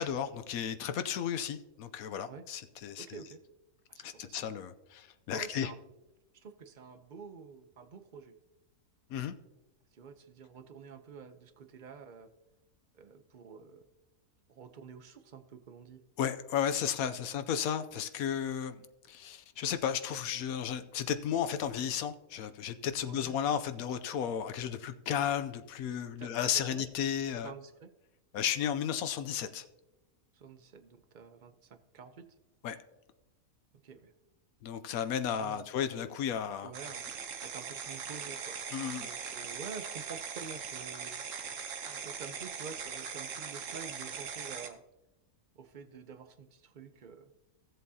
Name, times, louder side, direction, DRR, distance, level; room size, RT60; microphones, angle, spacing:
voice 1, 0.0-3.2 4.0-5.7 9.1-9.3 16.2-18.8 19.1-27.5 28.3-29.6 32.6-32.8 34.6-36.7 38.7-39.1, left 9 dB, 80° left, 10 dB, 1.1 m, -34 dB
voice 2, 3.0-3.4 3.9-4.4 5.3-5.8 6.3-8.4 9.9-12.3 12.9-13.8 14.5-16.0 23.0-23.4 26.2-26.3 26.7-26.9 27.3-27.9 30.3-32.2 33.8-34.1 35.4-35.7 36.6-37.1 37.4-41.2 41.8-44.8 45.5-47.3, right 6 dB, 50° right, 10 dB, 0.6 m, -48 dB
sound 1, 36.7-44.7, right 6 dB, 65° right, 1.2 m, -40 dB
16.0 x 7.6 x 2.8 m, 0.99 s
omnidirectional pair, 1.5 m